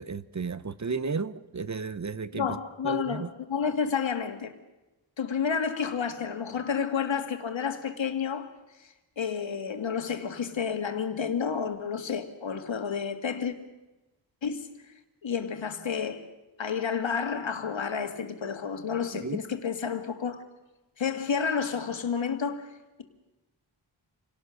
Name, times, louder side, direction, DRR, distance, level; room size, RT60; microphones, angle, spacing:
voice 1, 0.0-2.6 2.8-3.3 19.2-19.4, right 5 dB, 40° right, 0.8 m, -33 dB
voice 2, 2.3-4.5 5.2-13.5 14.4-14.9 15.2-16.3 16.6-20.4 21.0-23.0, left 6 dB, 80° left, 1.9 m, -30 dB
27.5 x 17.5 x 6.4 m
wide cardioid pair, 95°, 45 cm